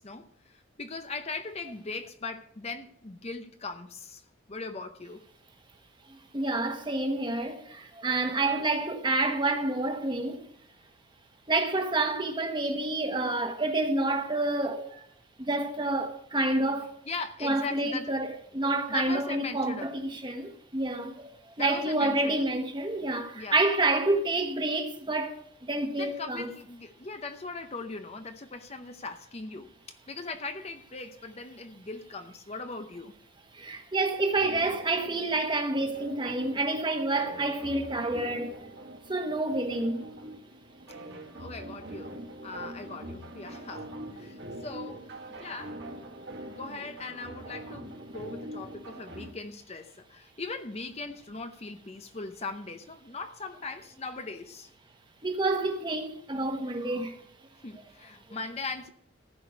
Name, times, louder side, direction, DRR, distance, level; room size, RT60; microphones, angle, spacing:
voice 1, 0.0-4.2 4.5-5.2 17.1-18.1 18.9-19.9 21.6-22.4 23.3-23.6 25.8-33.1 41.4-45.8 46.5-54.7 57.6-58.9, left 3 dB, 30° left, 0.7 m, -39 dB
voice 2, 6.3-10.5 11.5-15.1 15.4-16.9 17.4-21.3 21.6-26.5 33.5-38.6 39.1-40.0 55.2-57.2, right 2 dB, 25° right, 1.2 m, -28 dB
sound 1, 34.3-49.3, right 1 dB, 60° right, 1.8 m, -43 dB
15.0 x 5.1 x 8.1 m
head